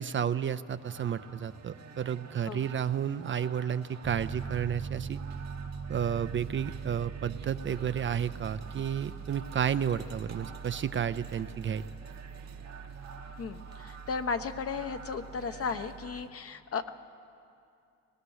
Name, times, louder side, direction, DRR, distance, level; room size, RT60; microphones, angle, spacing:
voice 1, 0.0-5.2 5.9-11.8, right 8 dB, 40° right, 13 dB, 0.5 m, -32 dB
sound 1, 0.7-16.3, right 5 dB, 60° right, 1.2 m, -49 dB
Piano, 4.0-16.2, right 6 dB, 25° right, 1.1 m, -42 dB
voice 2, 13.4-16.9, left 5 dB, 50° left, 8 dB, 1.0 m, -35 dB
21.5 x 19.5 x 6.4 m, 2.5 s
cardioid pair, 90°, 30 cm